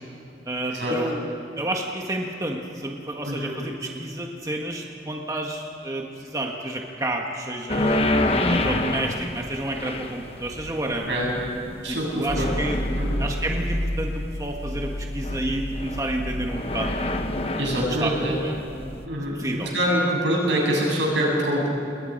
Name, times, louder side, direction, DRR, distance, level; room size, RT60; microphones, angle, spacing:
voice 1, 0.5-1.2 1.6-8.0 8.4-11.2 11.9-12.8 13.2-16.9 17.7-18.5 19.3-19.7, right 1 dB, 20° right, 1 dB, 1.4 m, -30 dB
sound 1, 7.7-19.0, left 1 dB, 35° left, 1.2 m, -28 dB
voice 2, 8.0-8.3 11.1-11.3 11.8-12.5 13.0-13.2 17.6-18.4 19.0-19.4 19.7-21.7, equal, 85° right, -3 dB, 7.9 m, -25 dB
29.0 x 21.5 x 5.3 m, 2.6 s
head